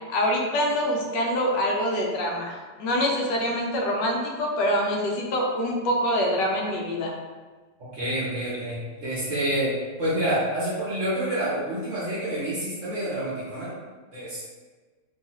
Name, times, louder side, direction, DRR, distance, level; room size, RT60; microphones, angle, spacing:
voice 1, 0.1-7.1, equal, 80° left, -1 dB, 1.3 m, -25 dB
voice 2, 7.8-13.7 14.1-14.4, right 1 dB, 60° right, -8 dB, 0.9 m, -28 dB
3.2 x 2.3 x 2.8 m, 1.4 s
omnidirectional pair, 1.9 m